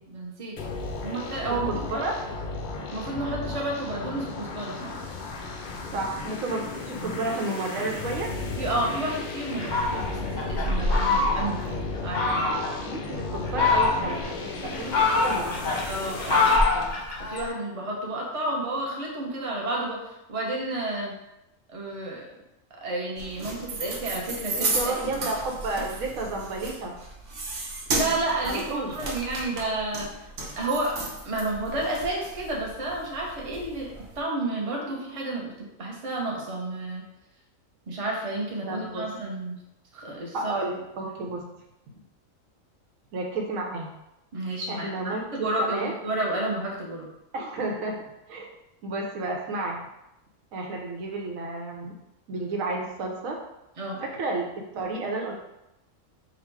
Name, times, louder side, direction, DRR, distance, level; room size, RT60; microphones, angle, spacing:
voice 1, 0.1-2.0 2.9-4.9 8.6-12.8 15.9-16.9 17.2-20.0 20.3-21.1 21.7-22.3 22.8-25.3 27.9-30.1 30.6-35.5 35.8-37.0 37.9-39.6 39.9-40.5 44.3-47.1 53.8-54.0, right 2 dB, 30° right, -3 dB, 0.8 m, -31 dB
sound 1, 0.6-16.6, left 3 dB, 65° left, 0.5 m, -35 dB
voice 2, 1.6-2.1 5.9-8.3 12.9-15.6 24.5-26.9 28.4-28.9 38.7-39.0 40.3-41.4 43.1-43.9 44.7-45.9 47.3-47.9 48.3-48.5 48.8-49.8 50.5-51.9 52.3-53.4 54.0-54.5 54.7-55.4, right 2 dB, 85° right, 0 dB, 1.2 m, -31 dB
Fowl, 9.6-11.7 12.1-12.8 13.3-14.3 14.7-17.5, left 3 dB, 40° left, 0.8 m, -24 dB
sound 2, 23.2-34.2, right 2 dB, 65° right, 1.2 m, -34 dB
3.9 x 2.4 x 4.6 m, 0.88 s
omnidirectional pair, 1.4 m